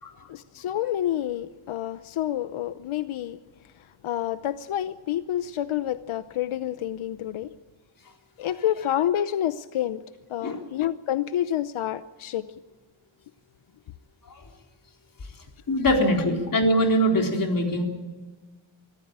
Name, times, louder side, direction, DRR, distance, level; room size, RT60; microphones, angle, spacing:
voice 1, 0.2-3.4 4.0-7.5 8.4-10.0 10.3-12.4, left 11 dB, 90° left, 13 dB, 0.8 m, -28 dB
voice 2, 15.7-17.8, equal, 45° left, 3 dB, 3.9 m, -22 dB
24.0 x 14.5 x 8.8 m, 1.3 s
wide cardioid pair, 145°, 48 cm